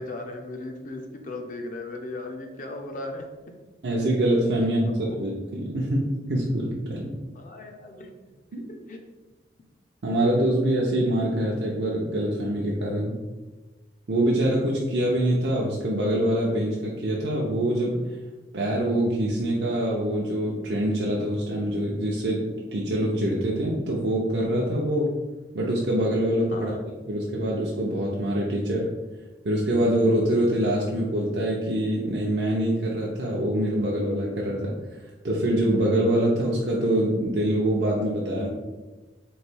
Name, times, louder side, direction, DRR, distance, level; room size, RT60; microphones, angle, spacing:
voice 1, 0.0-3.2 4.8-5.2 7.3-8.1 8.7-9.0 26.5-26.8, left 2 dB, 45° left, 3 dB, 0.5 m, -37 dB
voice 2, 3.8-7.1 8.5-8.7 10.0-13.2 14.1-18.0 18.5-22.4 22.7-25.1 25.5-26.7 27.1-28.9 29.4-34.7 35.2-38.5, right 1 dB, 65° right, -4 dB, 0.6 m, -24 dB
3.2 x 2.6 x 4.4 m, 1.2 s
head